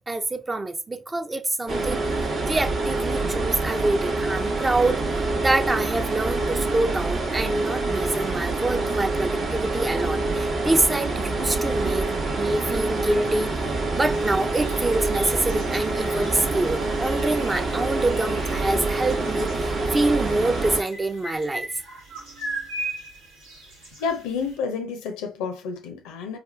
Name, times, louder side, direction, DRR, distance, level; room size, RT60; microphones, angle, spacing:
voice 1, 0.1-2.0 2.4-5.0 5.4-21.7, right 2 dB, 25° right, 0.5 m, -26 dB
sound 1, 1.7-20.8, right 2 dB, 55° right, 0.8 m, -26 dB
sound 2, 13.9-24.6, right 1 dB, 85° right, 1.0 m, -39 dB
voice 2, 24.0-26.4, left 5 dB, 75° left, 0.5 m, -30 dB
4.3 x 2.4 x 2.4 m
figure-of-eight pair, 40°, 0 cm